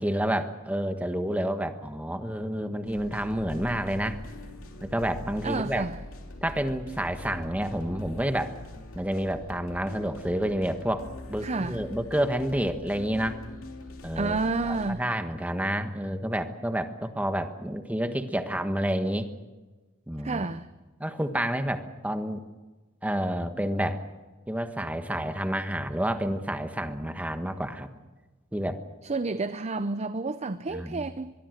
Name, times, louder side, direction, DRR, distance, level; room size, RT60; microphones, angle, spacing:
voice 1, 0.0-4.2 4.8-5.8 6.4-8.5 8.9-13.4 14.0-14.4 14.7-19.3 20.1-20.5 21.0-22.4 23.0-24.0 24.5-27.9 28.5-28.8 30.7-31.1, right 1 dB, 5° right, 1.4 m, -29 dB
sound 1, 2.9-14.9, left 1 dB, 70° left, 3.0 m, -43 dB
voice 2, 5.4-6.0 11.4-11.8 14.1-15.0 20.2-20.7 29.0-31.3, right 3 dB, 30° right, 0.6 m, -30 dB
24.0 x 22.5 x 6.5 m
head